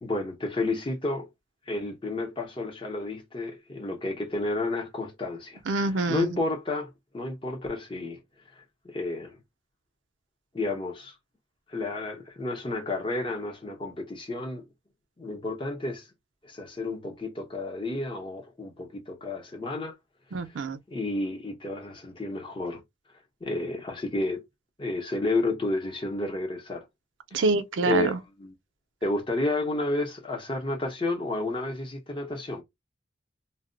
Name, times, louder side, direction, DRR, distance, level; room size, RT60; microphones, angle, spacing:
voice 1, 0.0-1.3 1.7-5.6 6.1-8.2 8.5-9.4 10.5-11.2 11.7-14.6 15.2-16.1 16.4-20.0 20.4-22.8 23.4-24.4 24.8-26.9 27.3-27.5 27.8-28.5 29.0-32.6, left 2 dB, 25° left, 0.7 m, -31 dB
voice 2, 5.7-6.4 20.3-20.8 27.3-28.2, right 3 dB, 85° right, 0.5 m, -26 dB
2.2 x 2.0 x 3.7 m
head